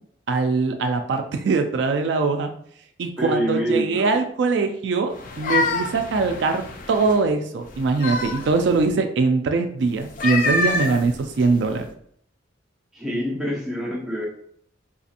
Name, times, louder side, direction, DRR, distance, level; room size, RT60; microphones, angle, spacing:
voice 1, 0.3-2.5 3.0-11.9, right 4 dB, 60° right, 6 dB, 0.3 m, -22 dB
voice 2, 3.2-4.1 12.9-14.3, equal, ahead, -5 dB, 0.8 m, -26 dB
sound 1, 5.1-7.2 7.7-8.9 10.0-11.8, left 3 dB, 45° left, 0.4 m, -27 dB
4.0 x 2.7 x 2.5 m, 0.65 s
head